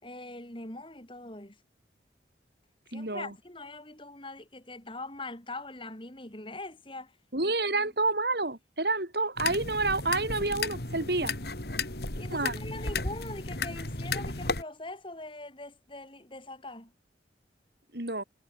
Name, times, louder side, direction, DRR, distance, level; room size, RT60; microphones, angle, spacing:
voice 1, 0.0-1.6 2.9-7.1 7.4-7.8 12.2-16.9, left 2 dB, 30° left, 4.0 m, -42 dB
voice 2, 2.9-3.3 7.3-11.3 12.3-12.6 17.9-18.2, right 2 dB, 65° right, 4.9 m, -29 dB
sound 1, 9.4-14.6, left 3 dB, 65° left, 3.7 m, -34 dB
head